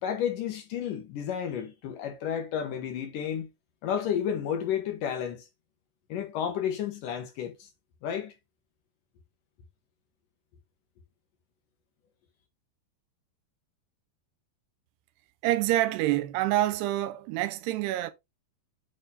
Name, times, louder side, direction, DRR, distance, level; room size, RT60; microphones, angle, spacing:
voice 1, 0.0-3.5 3.8-5.4 6.1-7.7 8.0-8.3, left 8 dB, 65° left, 2.4 m, -31 dB
voice 2, 15.4-18.1, right 15 dB, 90° right, 2.8 m, -27 dB
8.7 x 3.6 x 4.0 m
omnidirectional pair, 4.7 m